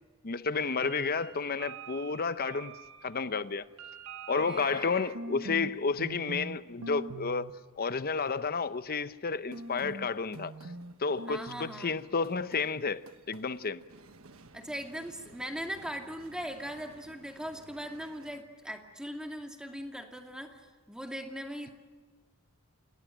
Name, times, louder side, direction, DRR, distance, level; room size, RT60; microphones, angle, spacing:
voice 1, 0.2-2.8 3.0-3.7 4.3-10.5 11.0-13.8, left 4 dB, 45° left, 0.8 m, -31 dB
sound 1, 0.5-5.7 6.0-6.6 6.8-7.5 9.5-18.4, right 2 dB, 65° right, 1.3 m, -45 dB
voice 2, 4.3-5.2 11.3-12.0 14.5-21.7, equal, 5° right, 2.4 m, -40 dB
29.5 x 17.5 x 9.1 m
head